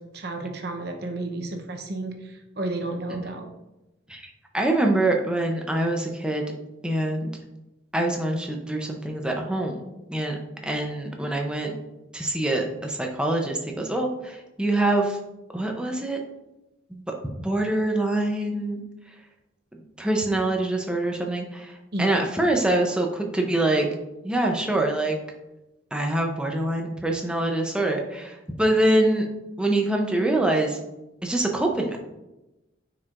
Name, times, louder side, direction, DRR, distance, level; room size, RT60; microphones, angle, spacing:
voice 1, 0.0-3.5 21.9-22.2, right 2 dB, 55° right, 4 dB, 0.8 m, -32 dB
voice 2, 4.1-6.5 6.8-7.3 7.9-9.8 10.1-10.4 10.6-11.7 12.1-15.2 15.5-16.2 16.9-18.8 20.0-23.9 24.2-25.2 25.9-29.3 29.6-30.8 31.2-32.0, right 1 dB, 5° right, 1 dB, 0.6 m, -25 dB
9.8 x 4.6 x 2.5 m, 0.99 s
head